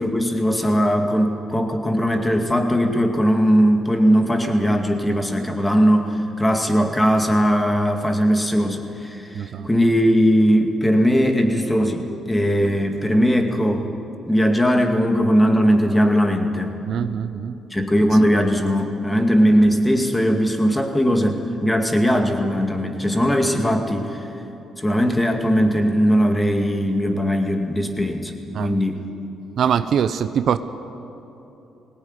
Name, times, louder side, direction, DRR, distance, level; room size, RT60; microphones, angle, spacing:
voice 1, 0.0-13.9 14.3-16.8 17.7-24.3 24.8-28.3 28.6-29.0, equal, 10° left, 4 dB, 2.2 m, -19 dB
voice 2, 9.4-9.7 16.9-17.5 28.5-28.7 29.6-30.6, right 8 dB, 65° right, 12 dB, 0.7 m, -22 dB
18.5 x 18.0 x 9.8 m, 3.0 s
cardioid pair, 90°, 0 cm